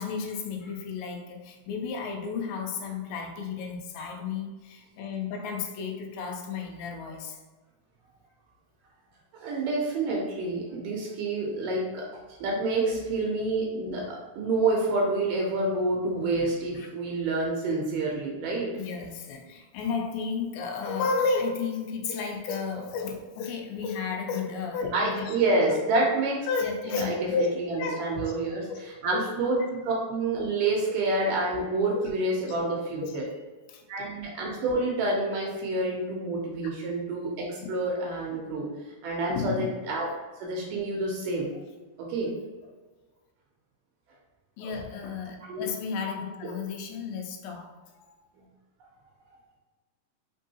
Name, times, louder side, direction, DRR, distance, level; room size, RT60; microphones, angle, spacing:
voice 1, 0.0-7.4 16.4-16.9 18.8-25.4 25.7-25.8 26.5-27.5 27.8-28.3 28.7-28.8 29.1-29.2 30.9-31.0 31.9-32.1 32.4-32.6 33.0-33.9 37.6-37.7 39.3-39.7 44.6-47.7, left 5 dB, 90° left, 2 dB, 2.4 m, -32 dB
voice 2, 9.4-18.7 24.9-26.5 27.0-33.3 33.9-38.7 39.0-40.1 40.4-41.5 42.1-42.3 45.5-45.7, right 2 dB, 75° right, -2 dB, 2.2 m, -28 dB
5.3 x 3.6 x 2.7 m, 1.3 s
omnidirectional pair, 4.1 m